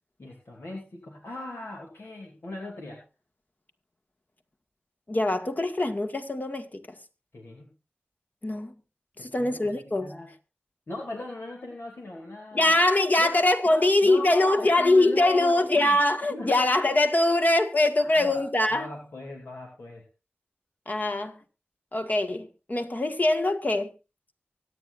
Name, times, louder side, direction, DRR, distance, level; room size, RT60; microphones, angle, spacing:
voice 1, 0.2-3.0 7.3-7.8 9.2-10.3 10.9-12.7 13.2-16.0 16.3-16.6 18.0-18.4 18.7-20.1, left 2 dB, 75° left, 2.6 m, -39 dB
voice 2, 5.1-6.8 8.4-8.7 9.2-10.1 12.5-18.9 20.8-21.4 21.9-23.9, left 2 dB, 45° left, 1.7 m, -23 dB
24.5 x 9.2 x 2.5 m
wide cardioid pair, 50°, 4 cm